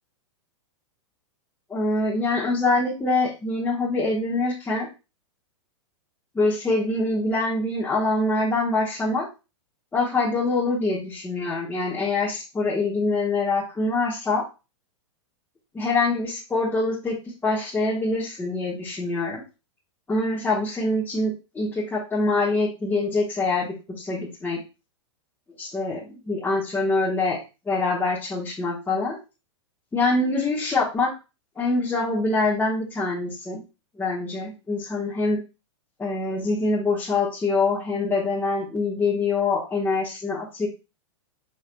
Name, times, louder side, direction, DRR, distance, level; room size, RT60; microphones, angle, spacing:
voice 1, 1.7-4.9 6.3-9.3 9.9-14.4 15.7-17.1 17.4-19.4 20.1-24.6 25.6-27.4 27.7-29.2 29.9-31.1 31.6-33.6 34.0-35.4 36.0-40.7, left 3 dB, 10° left, -7 dB, 1.3 m, -24 dB
4.7 x 4.6 x 2.2 m, 0.28 s
hypercardioid pair, 120°, 16 cm